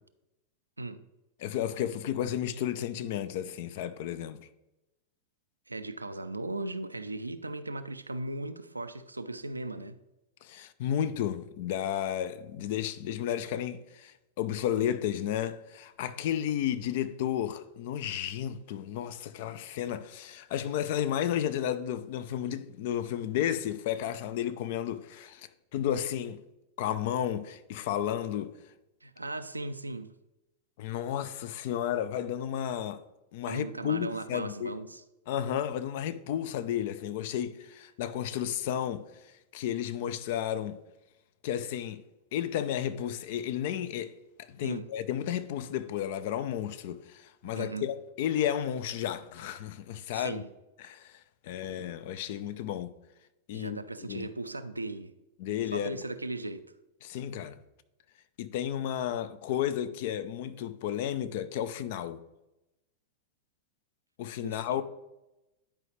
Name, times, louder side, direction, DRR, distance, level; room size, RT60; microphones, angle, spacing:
voice 1, 1.4-4.4 10.4-26.4 26.8-28.5 30.8-33.0 33.3-34.7 35.3-39.0 39.5-40.8 41.4-42.0 42.3-44.1 44.4-50.4 50.8-52.9 53.5-53.8 54.1-54.3 55.4-55.9 57.0-57.6 58.4-62.2 64.2-64.8, left 10 dB, 55° left, 0.5 m, -32 dB
voice 2, 5.7-10.0 29.0-30.1 33.4-35.0 44.6-44.9 47.4-47.9 50.1-50.5 53.5-55.2 55.7-56.7 64.4-64.8, right 2 dB, 90° right, 0.4 m, -37 dB
10.5 x 4.9 x 3.2 m
figure-of-eight pair, 95°, 0 cm